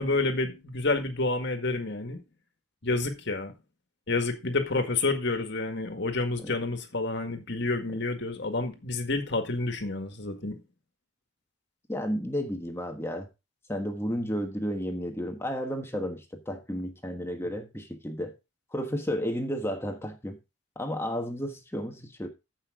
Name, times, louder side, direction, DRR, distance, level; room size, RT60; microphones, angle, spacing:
voice 1, 0.0-2.2 2.8-3.5 4.1-10.6, left 3 dB, 55° left, 1.8 m, -29 dB
voice 2, 11.9-13.3 13.7-18.3 18.7-20.4 20.7-22.3, equal, 10° left, 1.3 m, -32 dB
14.5 x 5.8 x 3.7 m
head